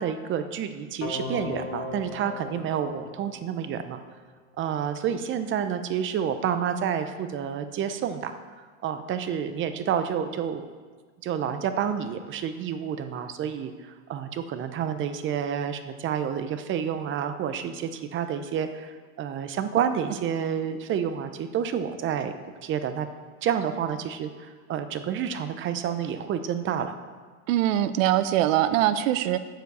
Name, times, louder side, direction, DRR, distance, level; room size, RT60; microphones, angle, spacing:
voice 1, 0.0-4.0 4.6-10.6 11.2-22.3 22.6-23.1 23.4-27.0, right 8 dB, 30° right, 10 dB, 0.6 m, -29 dB
sound 1, 1.0-4.0, left 3 dB, 35° left, 1.8 m, -37 dB
voice 2, 27.5-29.4, right 12 dB, 70° right, 13 dB, 0.7 m, -22 dB
7.6 x 7.1 x 6.7 m, 1.5 s
supercardioid pair, 125°, 41 cm